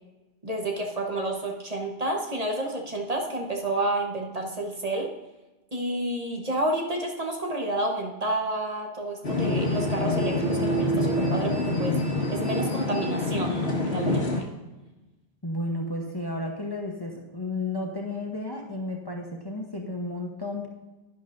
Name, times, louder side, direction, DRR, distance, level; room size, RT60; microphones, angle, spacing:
voice 1, 0.4-5.1 5.7-12.0 12.3-14.5, right 1 dB, 35° right, 1 dB, 1.2 m, -30 dB
sound 1, 9.2-14.4, left 1 dB, 75° left, 2.0 m, -26 dB
voice 2, 15.4-20.7, left 2 dB, 25° left, 1 dB, 0.9 m, -32 dB
11.0 x 11.0 x 2.6 m, 1.1 s
omnidirectional pair, 1.1 m